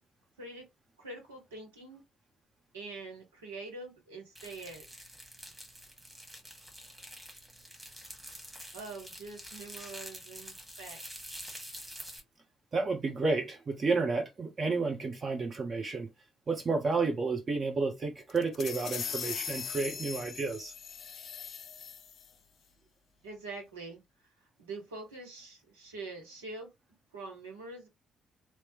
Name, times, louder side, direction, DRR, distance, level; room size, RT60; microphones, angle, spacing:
voice 1, 1.0-2.0 2.7-4.9 8.7-11.0 23.2-26.7 27.1-27.9, right 3 dB, 80° right, 0.9 m, -45 dB
sound 1, 4.4-12.2, equal, 10° right, 1.6 m, -47 dB
voice 2, 12.7-16.1 16.5-20.7, right 4 dB, 40° right, 1.1 m, -31 dB
sound 2, 18.3-22.3, left 7 dB, 50° left, 0.4 m, -40 dB
3.2 x 2.0 x 2.9 m
figure-of-eight pair, 45°, 0 cm